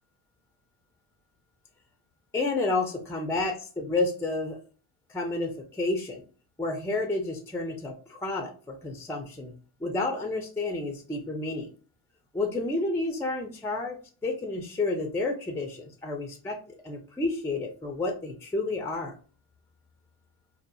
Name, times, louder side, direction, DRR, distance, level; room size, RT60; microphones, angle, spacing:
voice 1, 2.3-4.6 5.1-6.2 6.6-9.5 9.8-11.7 12.3-14.0 14.2-16.6 16.8-19.1, left 2 dB, 5° left, 4 dB, 0.4 m, -30 dB
2.9 x 2.0 x 2.3 m, 0.39 s
hypercardioid pair, 60°, 49 cm